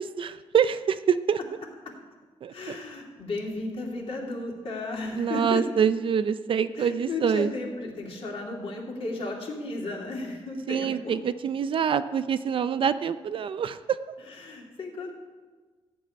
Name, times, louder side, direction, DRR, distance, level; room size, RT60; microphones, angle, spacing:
voice 1, 0.2-1.4 2.4-2.8 5.2-7.5 10.7-14.0, right 7 dB, 50° right, 12 dB, 0.4 m, -25 dB
voice 2, 2.5-5.6 6.8-11.1 14.3-15.1, left 2 dB, 55° left, -1 dB, 2.7 m, -34 dB
14.0 x 5.4 x 9.5 m, 1.4 s
wide cardioid pair, 180°, 11 cm